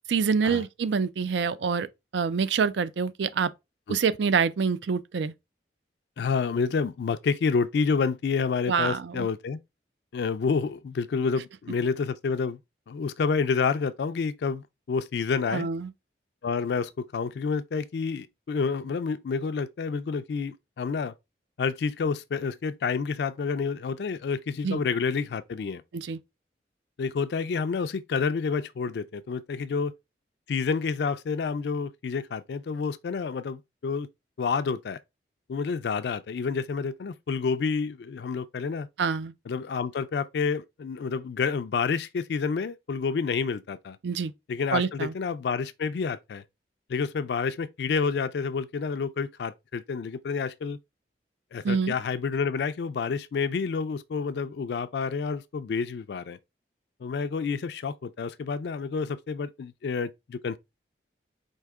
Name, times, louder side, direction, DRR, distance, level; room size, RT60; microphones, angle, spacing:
voice 1, 0.1-3.5 3.9-5.3 8.7-9.3 15.5-15.9 24.6-24.8 25.9-26.2 39.0-39.3 44.0-44.3 44.7-45.1 51.6-52.0, right 5 dB, 75° right, 0.4 m, -26 dB
voice 2, 6.2-9.6 10.1-12.6 12.9-15.7 16.4-21.1 21.6-25.8 27.0-29.9 30.5-34.1 34.4-35.0 35.5-38.9 39.5-44.0 44.5-46.4 46.9-50.8 51.5-56.4 57.0-60.6, left 5 dB, 70° left, 0.3 m, -29 dB
4.6 x 2.8 x 3.4 m
head